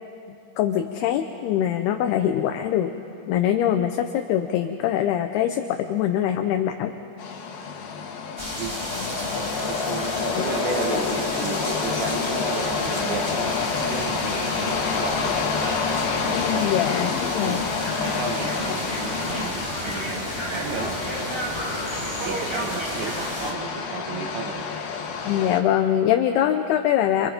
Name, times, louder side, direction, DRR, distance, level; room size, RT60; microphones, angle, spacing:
voice 1, 0.6-2.9 3.3-6.9 10.3-10.4 16.3-17.6 25.3-27.3, left 10 dB, 75° left, 6 dB, 2.4 m, -23 dB
sound 1, 7.2-25.6, left 5 dB, 60° left, 3.2 m, -28 dB
sound 2, 8.4-23.5, equal, 10° right, 1.4 m, -33 dB
voice 2, 8.6-8.9 9.7-15.3 16.3-17.1 17.5-17.7 18.0-21.4 22.2-24.7, right 5 dB, 75° right, 4 dB, 3.8 m, -34 dB
sound 3, 12.7-16.9 17.2-22.6, right 1 dB, 30° right, 1.1 m, -38 dB
29.0 x 27.0 x 5.2 m, 2.8 s
omnidirectional pair, 5.2 m